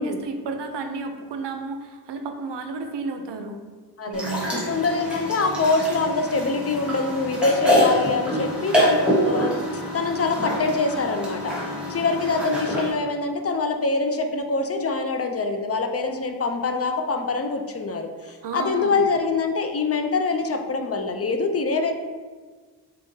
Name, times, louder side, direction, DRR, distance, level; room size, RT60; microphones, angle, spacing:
voice 1, 0.0-3.6 4.0-4.6 18.4-19.0, right 4 dB, 80° right, 6 dB, 0.5 m, -32 dB
sound 1, 4.1-12.9, equal, ahead, 1.1 m, -25 dB
voice 2, 4.7-11.5 11.9-21.9, left 3 dB, 35° left, 5 dB, 0.4 m, -24 dB
3.9 x 3.6 x 2.7 m, 1.4 s
wide cardioid pair, 90°, 42 cm